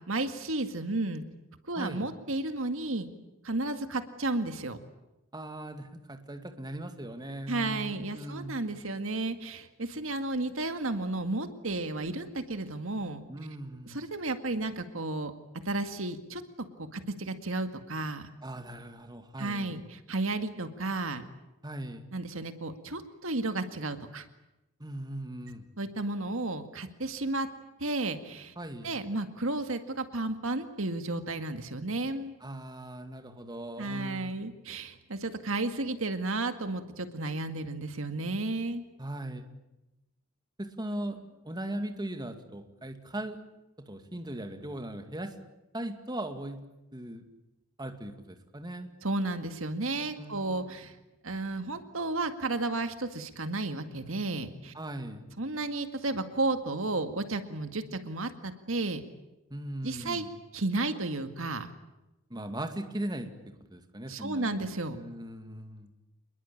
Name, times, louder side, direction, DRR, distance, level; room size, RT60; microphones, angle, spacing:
voice 1, 0.1-1.2 1.7-3.1 3.4-4.8 7.5-13.2 13.9-15.3 15.7-16.4 16.9-18.3 19.4-21.2 22.1-24.3 25.8-27.5 27.8-28.5 28.8-32.3 33.8-38.8 49.0-51.0 51.2-54.7 55.4-59.0 59.8-60.2 60.5-61.7 64.1-65.0, right 2 dB, 65° right, 8 dB, 2.0 m, -33 dB
voice 2, 1.8-2.1 5.3-8.5 13.3-14.1 18.4-19.8 21.6-22.1 24.8-25.6 28.6-29.0 32.4-34.4 39.0-39.4 40.6-43.4 43.8-45.3 45.7-46.6 46.9-47.2 47.8-48.9 50.2-50.7 54.7-55.3 59.5-60.3 62.3-63.3 63.7-65.9, right 1 dB, 20° right, 6 dB, 2.3 m, -39 dB
27.0 x 21.5 x 8.7 m, 0.96 s
head